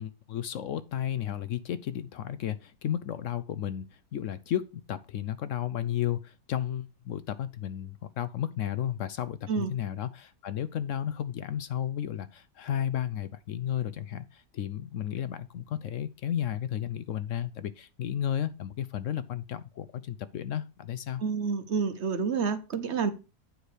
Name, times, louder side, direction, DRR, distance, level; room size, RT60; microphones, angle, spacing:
voice 1, 0.0-21.2, left 10 dB, 70° left, 0.8 m, -33 dB
voice 2, 21.2-23.1, right 5 dB, 50° right, 1.0 m, -29 dB
9.1 x 4.8 x 4.8 m
omnidirectional pair, 1.7 m